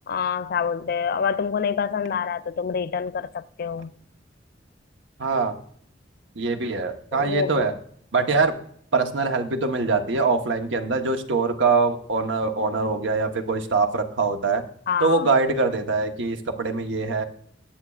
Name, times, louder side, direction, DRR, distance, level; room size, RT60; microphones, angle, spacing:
voice 1, 0.1-3.9 7.1-7.6 14.9-15.2, left 6 dB, 55° left, 0.4 m, -26 dB
voice 2, 5.2-5.5 6.4-7.7 8.1-8.5 8.9-14.6 15.0-17.2, right 4 dB, 90° right, 1.0 m, -23 dB
21.5 x 7.3 x 2.4 m
head